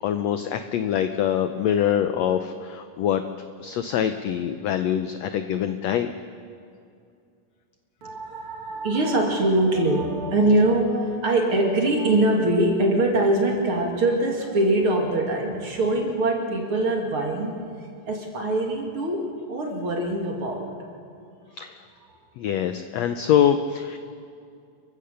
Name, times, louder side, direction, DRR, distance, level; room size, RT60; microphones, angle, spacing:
voice 1, 0.0-3.2 3.6-6.1 21.6-21.8 22.4-24.0, left 9 dB, 85° left, 9 dB, 1.5 m, -24 dB
voice 2, 8.0-17.6 18.1-20.8, right 1 dB, 40° right, 1 dB, 3.0 m, -23 dB
30.0 x 15.0 x 6.9 m, 2.4 s
omnidirectional pair, 4.0 m